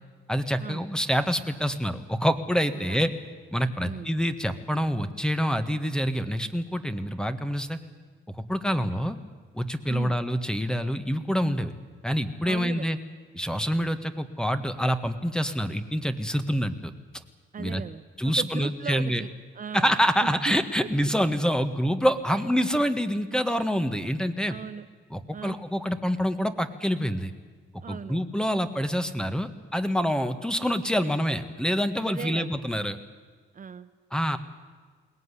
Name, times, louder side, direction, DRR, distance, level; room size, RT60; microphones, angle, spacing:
voice 1, 0.3-3.1 3.5-7.8 8.3-9.2 9.5-11.7 12.0-13.0 13.3-16.9 17.6-17.8 18.2-19.2 19.7-24.5 25.1-27.3 27.9-33.0 34.1-34.4, equal, 5° left, 9 dB, 1.5 m, -26 dB
voice 2, 12.4-13.0 17.5-19.9 20.2-20.5 24.5-24.9 25.3-25.6 27.8-28.2 32.0-32.6 33.5-33.9, right 7 dB, 40° right, 10 dB, 0.9 m, -38 dB
21.5 x 18.0 x 9.9 m, 1.5 s
cardioid pair, 90°, 20 cm